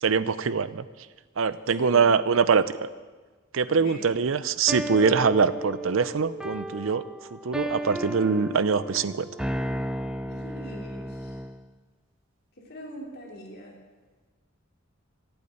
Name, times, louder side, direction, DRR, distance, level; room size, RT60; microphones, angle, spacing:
voice 1, 0.0-0.8 1.4-2.9 3.5-7.0 7.4-9.2, right 5 dB, 75° right, 15 dB, 0.6 m, -23 dB
voice 2, 1.8-2.1 3.6-4.2 10.3-11.3 12.7-13.8, left 1 dB, 50° left, -1 dB, 3.0 m, -42 dB
sound 1, 4.7-11.6, right 1 dB, 5° right, 0.4 m, -34 dB
12.0 x 8.2 x 9.4 m, 1.4 s
head